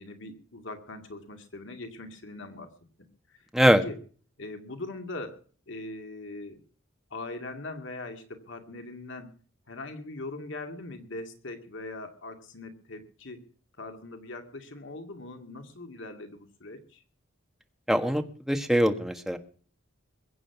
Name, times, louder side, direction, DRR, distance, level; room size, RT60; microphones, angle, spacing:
voice 1, 0.0-2.7 3.3-3.4 3.8-4.0 4.4-6.6 7.1-9.3 9.7-13.4 13.8-17.0, left 2 dB, 70° left, 5 dB, 2.3 m, -41 dB
voice 2, 3.5-3.8 17.9-19.4, equal, ahead, 6 dB, 1.5 m, -23 dB
22.0 x 8.9 x 5.9 m, 0.43 s
head